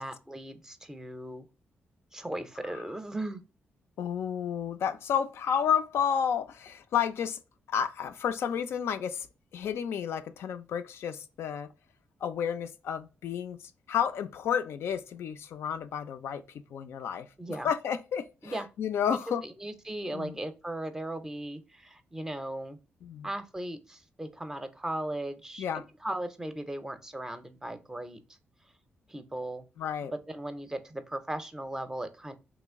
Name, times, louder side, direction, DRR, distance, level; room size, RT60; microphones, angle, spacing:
voice 1, 0.0-1.5 2.1-3.4 17.4-17.7 18.4-18.7 19.3-22.8 23.2-28.2 29.1-29.7 30.1-32.4, right 1 dB, 15° right, 0.5 m, -37 dB
voice 2, 4.0-7.4 7.7-9.3 9.5-11.7 12.2-13.6 13.9-16.4 16.7-19.4 20.1-20.4 23.0-23.3 25.6-25.8 29.8-30.1, left 8 dB, 80° left, 0.4 m, -31 dB
3.0 x 2.5 x 3.5 m
cardioid pair, 95°, 4 cm